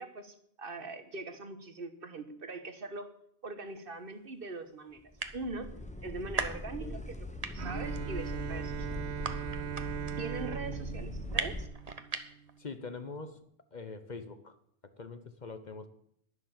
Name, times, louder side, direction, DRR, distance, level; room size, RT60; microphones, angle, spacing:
voice 1, 0.0-3.1 3.4-5.0 5.3-5.7 6.0-7.3 7.5-9.0 10.2-11.7, right 3 dB, 55° right, 9 dB, 1.4 m, -41 dB
sound 1, 3.7-3.8 4.4-4.5 4.7-4.8 5.0-5.7 6.1-7.2 7.4-12.6, right 4 dB, 35° right, 1.0 m, -37 dB
sound 2, 5.1-11.7, left 1 dB, 5° left, 0.8 m, -41 dB
Bowed string instrument, 7.6-12.4, right 9 dB, 70° right, 1.1 m, -40 dB
voice 2, 12.6-13.4 13.7-14.6 15.0-15.9, left 4 dB, 45° left, 10 dB, 0.9 m, -43 dB
11.0 x 10.5 x 7.4 m, 0.69 s
omnidirectional pair, 1.1 m